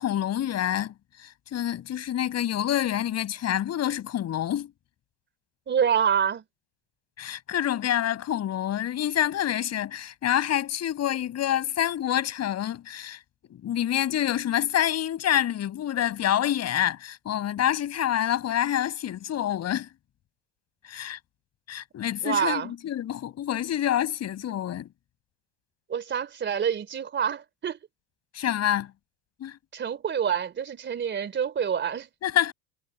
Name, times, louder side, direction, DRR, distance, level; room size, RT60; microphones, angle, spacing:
voice 1, 0.0-4.7 7.2-13.2 13.5-19.9 20.8-21.2 21.7-24.9 28.3-28.9 29.4-29.6 32.2-32.5, left 11 dB, 35° left, 6.7 m, -27 dB
voice 2, 5.7-6.4 22.2-22.7 25.9-27.8 29.7-32.1, right 8 dB, 25° right, 3.4 m, -27 dB
supercardioid pair, 125°, 42 cm